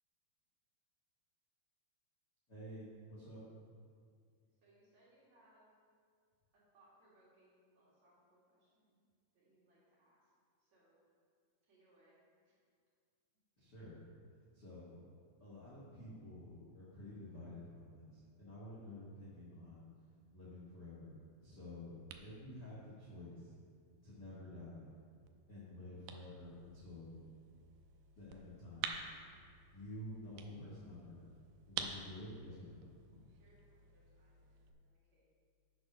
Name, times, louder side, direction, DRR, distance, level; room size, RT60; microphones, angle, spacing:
voice 1, 2.5-3.4 13.6-14.0 14.5-15.0 15.4-19.9 20.3-23.5 24.0-24.9 25.5-27.2 28.1-28.9 29.7-31.2 31.7-32.9, left 1 dB, 45° left, -8 dB, 1.4 m, -50 dB
voice 2, 4.6-5.7 6.5-9.0 9.3-10.3 10.6-11.0 11.6-12.5 33.4-35.2, right 1 dB, 50° right, -7 dB, 3.3 m, -70 dB
sound 1, 21.2-34.7, right 7 dB, 80° right, 2.1 m, -51 dB
9.7 x 6.3 x 6.0 m, 2.1 s
omnidirectional pair, 4.5 m